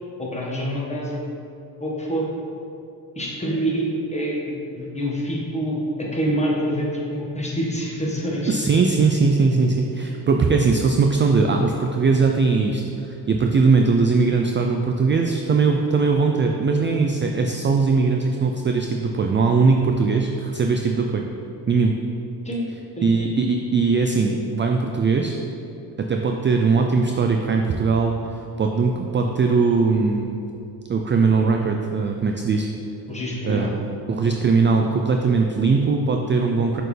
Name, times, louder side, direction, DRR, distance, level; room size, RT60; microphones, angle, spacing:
voice 1, 0.2-1.2 1.8-2.3 3.1-8.6 22.4-22.6 23.0-23.1 33.1-33.7, equal, 15° left, -4 dB, 1.4 m, -26 dB
voice 2, 8.5-21.2 21.7-21.9 23.0-25.4 26.0-30.4 30.9-32.7 33.5-33.8 34.1-36.8, right 4 dB, 30° right, 3 dB, 0.4 m, -20 dB
6.4 x 4.4 x 3.3 m, 2.7 s
cardioid pair, 75°, 42 cm